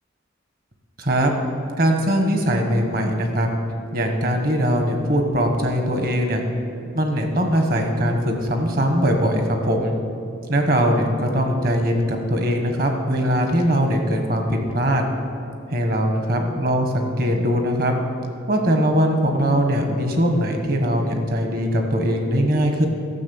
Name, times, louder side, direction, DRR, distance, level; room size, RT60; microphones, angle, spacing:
voice 1, 1.0-1.3 1.8-3.5 3.9-6.4 6.9-9.9 10.5-15.1 15.7-17.9 18.5-22.9, equal, 45° right, 4 dB, 1.2 m, -21 dB
12.5 x 6.2 x 7.1 m, 2.6 s
head